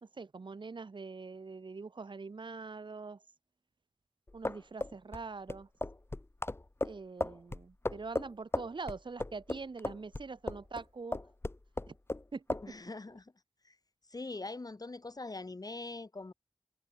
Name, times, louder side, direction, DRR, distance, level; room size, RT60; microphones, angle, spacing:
voice 1, 0.0-3.2 4.3-5.7 6.8-11.2 11.9-12.0 12.3-12.6, right 4 dB, 75° right, 1.3 m, -43 dB
sound 1, 4.3-10.8 11.1-12.2 12.5-12.7, left 2 dB, 30° left, 1.0 m, -36 dB
voice 2, 12.6-13.3 13.6-13.8 14.1-16.3, left 3 dB, 50° left, 1.4 m, -42 dB
wide cardioid pair, 45°, 8 cm